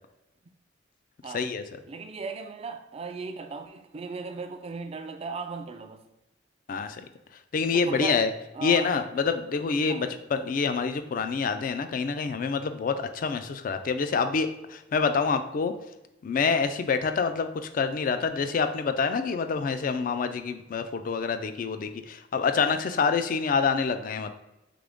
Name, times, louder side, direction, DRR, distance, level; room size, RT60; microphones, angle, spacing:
voice 1, 1.3-1.6 6.7-7.0 7.5-8.3 8.6-15.7 16.2-24.3, left 5 dB, 45° left, 0.3 m, -27 dB
voice 2, 1.9-6.0 7.6-8.2 8.5-8.9 9.8-10.2, right 4 dB, 30° right, 0.3 m, -37 dB
3.7 x 3.7 x 3.5 m
head